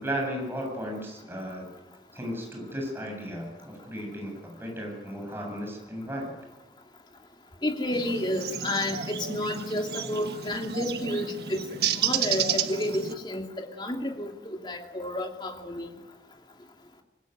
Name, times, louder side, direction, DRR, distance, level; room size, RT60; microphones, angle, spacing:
voice 1, 0.0-1.7 2.1-6.3, equal, 15° right, 0 dB, 7.7 m, -35 dB
voice 2, 7.6-11.6 11.9-15.9, left 1 dB, 25° left, 3 dB, 2.7 m, -31 dB
sound 1, 7.9-13.1, right 8 dB, 65° right, 1.4 m, -31 dB
25.5 x 20.5 x 9.4 m, 1.1 s
head